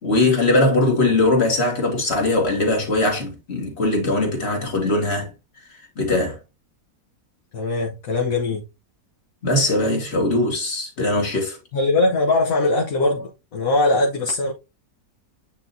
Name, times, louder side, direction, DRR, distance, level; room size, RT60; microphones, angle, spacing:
voice 1, 0.0-5.3 6.0-6.4 9.4-11.6, left 2 dB, 40° left, 2.3 m, -20 dB
voice 2, 7.5-8.6 11.7-14.5, left 2 dB, 65° left, 1.4 m, -21 dB
8.9 x 3.9 x 2.7 m
omnidirectional pair, 1.6 m